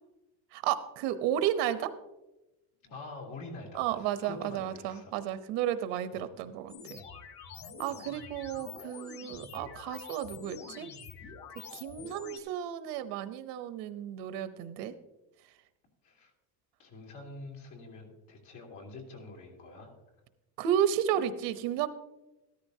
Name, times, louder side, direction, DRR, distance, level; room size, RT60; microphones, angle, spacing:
voice 1, 0.5-1.9 3.7-7.0 7.8-10.9 11.7-14.9 20.6-21.9, right 10 dB, 90° right, 11 dB, 0.9 m, -32 dB
voice 2, 2.8-5.2 6.1-6.3 7.9-8.1 16.0-16.3 16.8-19.9 21.1-21.2, left 2 dB, 80° left, 0 dB, 3.2 m, -46 dB
sound 1, 6.7-12.4, left 5 dB, 60° left, 1.5 m, -46 dB
13.5 x 13.0 x 2.8 m, 1.0 s
cardioid pair, 150°, 40 cm